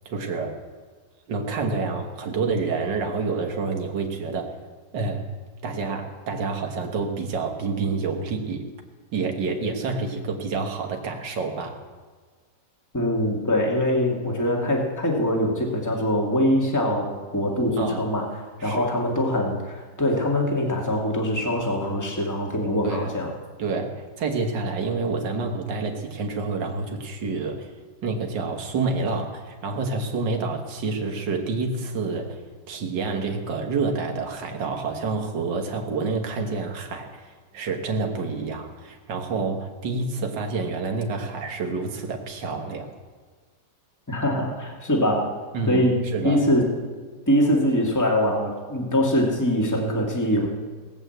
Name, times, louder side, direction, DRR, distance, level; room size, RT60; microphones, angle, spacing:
voice 1, 0.1-0.6 1.3-4.6 4.9-5.3 5.6-8.7 9.1-11.8 17.8-18.1 18.6-18.9 22.8-23.1 23.6-27.7 28.0-32.4 32.7-42.9 45.5-45.9 46.1-46.4, right 4 dB, 75° right, 3 dB, 2.1 m, -28 dB
voice 2, 12.9-18.3 18.6-23.3 44.1-45.3 45.7-46.7 47.3-50.5, left 1 dB, 10° left, -1 dB, 2.1 m, -23 dB
18.5 x 7.9 x 7.9 m, 1.5 s
omnidirectional pair, 2.0 m